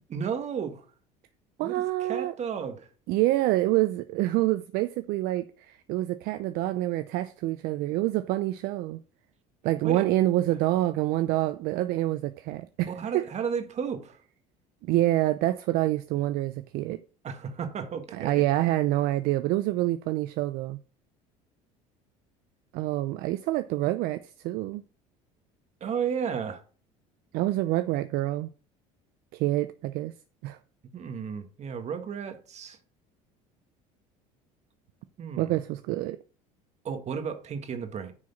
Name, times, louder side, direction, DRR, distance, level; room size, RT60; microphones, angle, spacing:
voice 1, 0.1-0.8 1.6-2.9 9.8-10.1 12.9-14.2 17.2-18.5 25.8-26.6 30.9-32.8 35.2-35.6 36.8-38.1, right 7 dB, 45° right, 1.7 m, -33 dB
voice 2, 1.6-2.3 3.1-9.0 9.6-13.2 14.8-17.0 18.1-20.8 22.7-24.8 27.3-28.5 29.3-30.1 30.4-30.6 35.4-36.2, right 16 dB, 65° right, 0.6 m, -27 dB
9.7 x 4.8 x 5.8 m
supercardioid pair, 85°, 16 cm